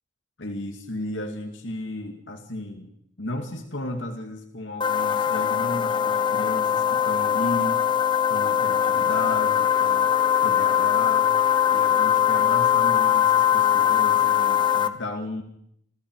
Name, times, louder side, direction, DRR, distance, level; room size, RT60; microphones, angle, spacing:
voice 1, 0.4-2.9 3.2-7.8 8.3-10.1 10.4-11.3 11.7-15.4, left 1 dB, 75° left, 5 dB, 2.3 m, -34 dB
sound 1, 4.8-14.9, left 9 dB, 25° left, 1.1 m, -21 dB
28.0 x 27.0 x 4.8 m, 0.73 s
head